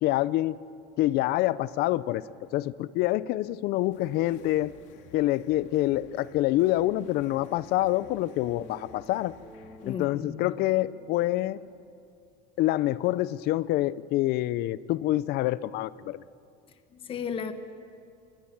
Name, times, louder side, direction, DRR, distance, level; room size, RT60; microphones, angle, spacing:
voice 1, 0.0-0.6 1.0-2.3 2.5-4.7 5.1-9.3 9.9-11.6 12.6-16.2, left 15 dB, 55° left, 18 dB, 0.6 m, -26 dB
sound 1, 3.9-10.0, left 7 dB, 75° left, 2.3 m, -55 dB
sound 2, 5.6-11.5, right 1 dB, 30° right, 6.3 m, -53 dB
voice 2, 9.8-10.6 16.9-17.5, left 7 dB, 30° left, 8 dB, 1.2 m, -35 dB
26.5 x 21.0 x 7.4 m, 2.4 s
cardioid pair, 165°, 19 cm